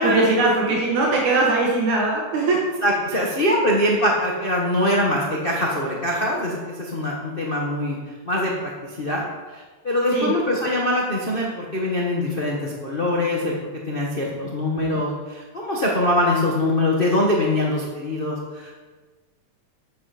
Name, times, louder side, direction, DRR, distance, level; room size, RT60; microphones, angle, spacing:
voice 1, 0.0-2.7 3.1-3.2 10.1-10.3 14.9-15.0, right 3 dB, 75° right, -2 dB, 2.8 m, -21 dB
voice 2, 2.8-8.0 8.2-13.5 13.9-18.7, left 1 dB, 85° left, -3 dB, 0.5 m, -23 dB
10.5 x 8.1 x 5.0 m, 1.4 s
omnidirectional pair, 3.4 m